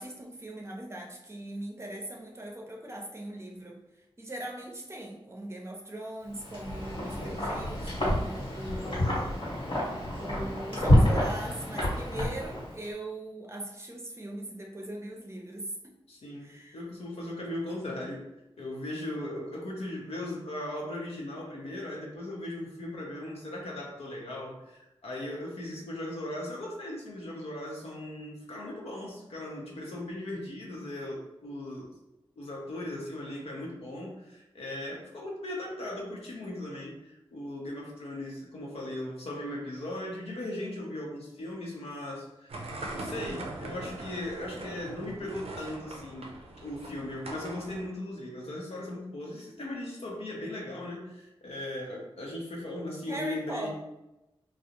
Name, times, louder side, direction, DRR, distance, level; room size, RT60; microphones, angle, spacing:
voice 1, 0.0-3.8 4.2-9.4 10.2-15.7 16.4-16.8 53.1-53.8, right 1 dB, 25° right, 0 dB, 0.5 m, -40 dB
Wind, 6.3-12.8, left 1 dB, 60° left, 1.1 m, -28 dB
voice 2, 16.1-18.2 18.6-31.9 32.4-42.6 42.9-53.7, left 1 dB, 85° left, -2 dB, 0.6 m, -38 dB
sound 1, 42.5-47.8, right 2 dB, 80° right, 0.4 m, -41 dB
2.4 x 2.0 x 2.8 m, 0.94 s
cardioid pair, 55°, 10 cm